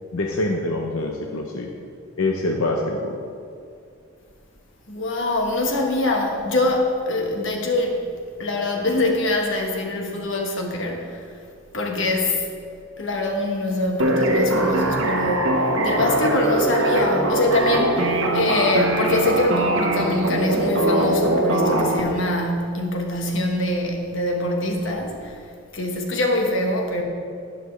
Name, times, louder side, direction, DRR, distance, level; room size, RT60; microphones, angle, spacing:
voice 1, 0.1-1.7 2.2-3.2, left 2 dB, 90° left, 1 dB, 0.8 m, -25 dB
voice 2, 4.9-8.1 8.4-11.3 11.7-12.4 13.0-25.4 25.7-27.0, left 2 dB, 65° left, 2 dB, 1.3 m, -24 dB
sound 1, 14.0-22.0, right 1 dB, 70° right, 1.1 m, -21 dB
11.5 x 10.0 x 3.2 m, 2.3 s
head